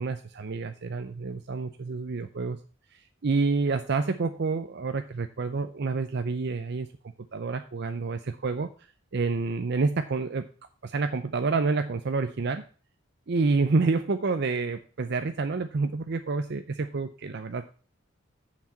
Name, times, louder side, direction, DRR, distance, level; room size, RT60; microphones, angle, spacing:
voice 1, 0.0-2.6 2.9-6.9 7.3-8.7 9.1-10.4 10.8-12.6 13.3-17.6, right 4 dB, 60° right, 8 dB, 0.6 m, -28 dB
7.2 x 6.1 x 7.4 m, 0.39 s
head